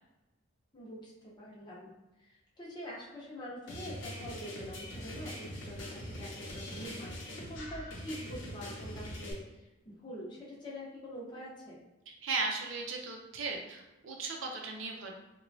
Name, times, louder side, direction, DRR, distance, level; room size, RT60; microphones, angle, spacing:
voice 1, 0.7-1.1 1.4-1.9 2.2-9.6 9.8-11.8, equal, 25° left, -6 dB, 0.7 m, -45 dB
sound 1, 3.7-9.3, equal, 75° left, 0.7 m, -43 dB
voice 2, 12.1-15.1, right 3 dB, 80° right, 1 dB, 0.5 m, -37 dB
3.0 x 2.2 x 2.6 m, 1.0 s
head